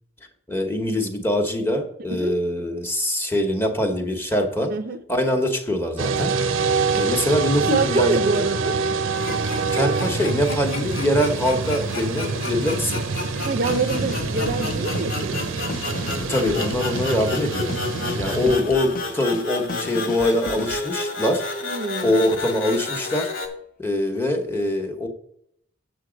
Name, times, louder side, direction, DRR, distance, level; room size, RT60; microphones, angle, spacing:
voice 1, 0.5-4.7 5.1-6.3 6.9-8.4 9.7-13.0 16.1-17.7 18.2-21.4 22.0-23.3 23.8-25.1, left 1 dB, 10° left, 1.0 m, -23 dB
voice 2, 4.7-5.0 7.6-8.8 13.4-15.6 21.6-22.2, right 3 dB, 45° right, 0.5 m, -25 dB
sound 1, 6.0-18.6, right 4 dB, 85° right, 0.6 m, -26 dB
sound 2, 9.1-23.5, left 3 dB, 90° left, 2.2 m, -32 dB
sound 3, 13.6-21.0, left 3 dB, 40° left, 0.4 m, -35 dB
8.2 x 6.9 x 5.1 m
head